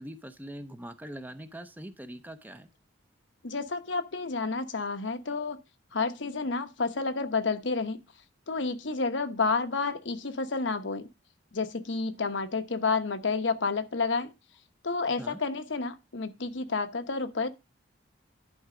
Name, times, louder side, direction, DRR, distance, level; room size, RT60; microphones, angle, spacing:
voice 1, 0.0-2.7 15.2-15.4, right 1 dB, 10° right, 0.6 m, -42 dB
voice 2, 3.4-5.6 5.9-8.0 8.5-11.1 11.5-14.3 14.8-17.5, left 4 dB, 75° left, 1.0 m, -30 dB
11.0 x 4.7 x 4.9 m
head